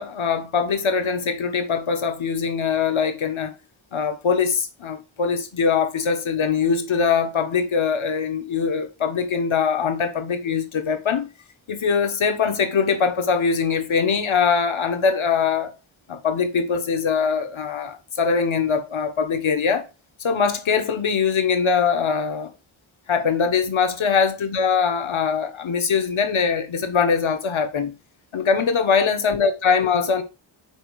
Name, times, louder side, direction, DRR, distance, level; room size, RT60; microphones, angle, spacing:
voice 1, 0.0-3.5 3.9-11.3 11.7-15.8 16.1-19.9 20.2-22.5 23.1-27.9 28.3-30.2, left 6 dB, 75° left, 1.5 m, -22 dB
6.2 x 4.6 x 4.8 m
wide cardioid pair, 105°, 48 cm